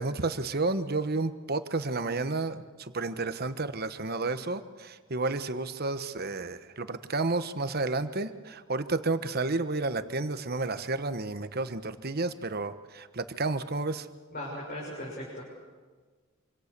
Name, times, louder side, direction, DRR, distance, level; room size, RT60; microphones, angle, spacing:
voice 1, 0.0-2.6 2.9-14.0, right 3 dB, 45° right, 11 dB, 1.1 m, -31 dB
voice 2, 14.3-15.4, left 1 dB, 45° left, -4 dB, 6.4 m, -38 dB
26.0 x 26.0 x 6.8 m, 1.4 s
head